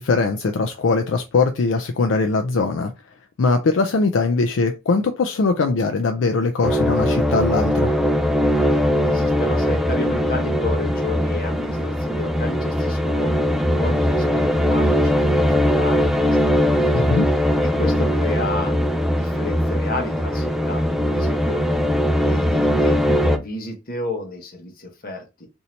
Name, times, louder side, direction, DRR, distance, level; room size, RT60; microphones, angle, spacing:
voice 1, 0.0-2.9 3.4-7.9 16.9-17.3, left 3 dB, 70° left, 0.4 m, -21 dB
sound 1, 6.6-23.4, equal, ahead, 0.3 m, -20 dB
voice 2, 8.8-13.4 13.7-17.1 17.6-18.7 19.2-21.6 22.2-25.5, left 2 dB, 50° left, 1.0 m, -32 dB
2.7 x 2.7 x 4.3 m
head